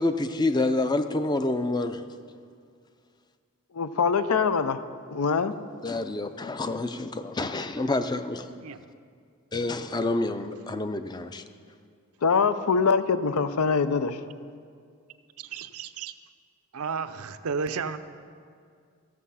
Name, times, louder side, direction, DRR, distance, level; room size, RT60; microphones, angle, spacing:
voice 1, 0.0-2.0 5.8-8.5 9.5-11.4, left 2 dB, 20° left, 9 dB, 0.4 m, -28 dB
voice 2, 3.7-4.8 5.1-5.6 12.2-14.2, left 5 dB, 85° left, 12 dB, 0.6 m, -23 dB
voice 3, 8.5-8.8 15.4-16.1 16.7-18.0, right 5 dB, 85° right, 11 dB, 0.5 m, -33 dB
15.0 x 7.3 x 5.6 m, 2.2 s
head